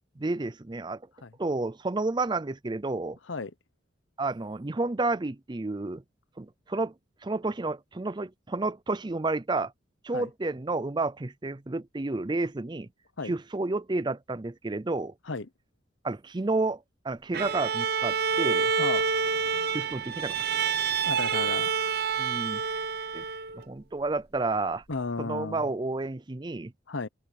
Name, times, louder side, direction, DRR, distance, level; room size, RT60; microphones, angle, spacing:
voice 1, 0.2-1.0 1.4-3.2 4.2-6.0 6.4-6.9 7.2-9.7 10.0-12.9 13.2-15.1 16.0-18.7 19.7-20.4 22.2-22.6 23.1-23.2 23.5-24.8 25.2-26.7, right 3 dB, 25° right, 0.5 m, -31 dB
Bowed string instrument, 17.3-23.6, right 6 dB, 55° right, 0.8 m, -28 dB
voice 2, 18.8-19.1 21.0-21.9 24.9-25.6 26.9-27.1, left 3 dB, 80° left, 1.0 m, -34 dB
head